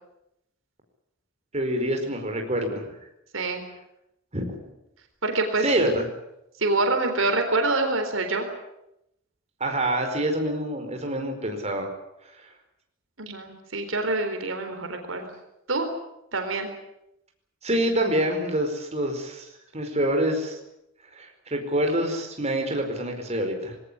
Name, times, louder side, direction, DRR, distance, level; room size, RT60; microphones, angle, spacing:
voice 1, 1.5-2.9 4.3-4.5 5.6-6.0 9.6-11.9 17.6-19.5 19.7-20.6 21.2-23.7, right 1 dB, 35° right, 3 dB, 4.8 m, -26 dB
voice 2, 3.3-3.6 5.2-5.6 6.6-8.5 13.2-15.3 15.7-15.9 16.3-16.7, right 2 dB, 80° right, 5 dB, 4.0 m, -26 dB
21.5 x 18.0 x 10.0 m, 0.84 s
head